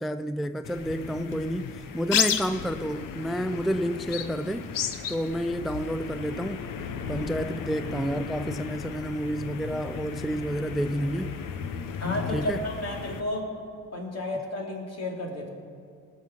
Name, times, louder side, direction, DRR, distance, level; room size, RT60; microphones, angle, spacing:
voice 1, 0.0-6.7 7.1-11.4 12.3-12.6, equal, ahead, 11 dB, 0.4 m, -30 dB
sound 1, 0.6-13.2, left 7 dB, 80° left, 1.0 m, -34 dB
voice 2, 12.0-13.5 13.9-15.5, left 1 dB, 50° left, 0 dB, 3.2 m, -32 dB
18.5 x 6.5 x 6.5 m, 2.3 s
supercardioid pair, 65°, 33 cm